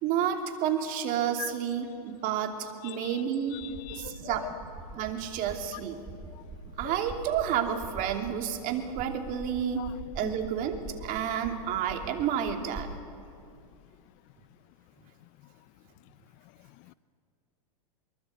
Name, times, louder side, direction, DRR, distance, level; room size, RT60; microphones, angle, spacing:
voice 1, 0.0-3.6 3.9-4.5 5.0-6.0 6.8-9.8 10.1-12.9, right 9 dB, 45° right, 4 dB, 2.9 m, -30 dB
voice 2, 3.5-4.3 9.8-9.9 10.2-10.3, left 23 dB, 40° left, 18 dB, 0.5 m, -41 dB
sound 1, 3.5-13.0, right 3 dB, 20° right, 4.1 m, -44 dB
24.5 x 22.5 x 8.1 m, 2.4 s
hypercardioid pair, 120°, 20 cm